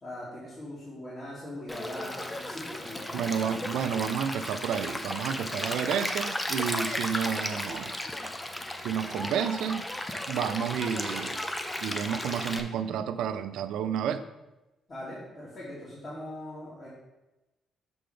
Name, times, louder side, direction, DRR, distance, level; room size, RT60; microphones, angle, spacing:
voice 1, 0.0-3.5 5.3-5.7 14.9-16.9, left 1 dB, 40° left, -8 dB, 2.4 m, -41 dB
Stream, 1.7-12.6, left 1 dB, 15° left, 0.6 m, -34 dB
voice 2, 3.1-7.9 8.8-9.8 10.3-11.4 11.8-14.2, right 8 dB, 85° right, 11 dB, 0.4 m, -30 dB
6.8 x 3.8 x 5.0 m, 1.0 s
cardioid pair, 90°, 0 cm